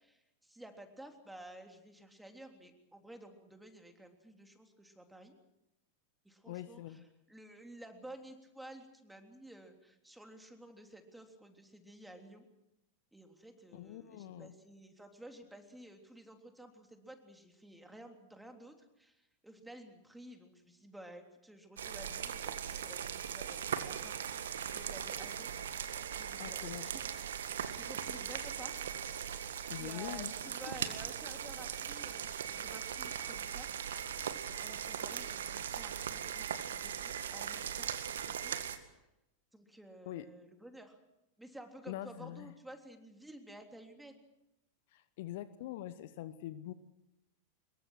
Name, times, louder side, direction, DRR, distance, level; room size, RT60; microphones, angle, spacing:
voice 1, 0.0-5.3 6.3-7.0 7.3-12.5 13.1-25.5 25.9-27.1 27.7-28.8 29.1-33.8 34.6-39.1 39.5-41.0 41.4-44.2, right 1 dB, 5° right, 4 dB, 3.4 m, -53 dB
voice 2, 6.5-7.0 13.7-14.5 26.4-26.9 29.7-30.5 40.1-40.2 41.9-42.5 44.9-46.7, left 13 dB, 50° left, 15 dB, 1.1 m, -44 dB
sound 1, 21.8-38.8, right 8 dB, 65° right, 1.8 m, -39 dB
25.5 x 22.0 x 6.3 m, 0.89 s
figure-of-eight pair, 90°, 0 cm